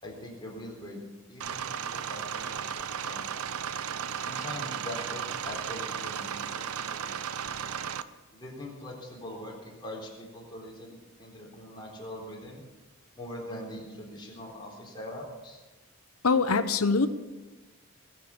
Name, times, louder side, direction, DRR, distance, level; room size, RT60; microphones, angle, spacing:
voice 1, 0.0-1.0 1.3-3.3 4.3-7.2 8.3-12.6 13.1-15.6, left 1 dB, 20° left, -2 dB, 3.9 m, -42 dB
sound 1, 1.4-8.0, right 8 dB, 85° right, 0.6 m, -35 dB
voice 2, 16.2-17.1, left 4 dB, 80° left, 11 dB, 0.9 m, -23 dB
21.0 x 7.5 x 7.2 m, 1.2 s
head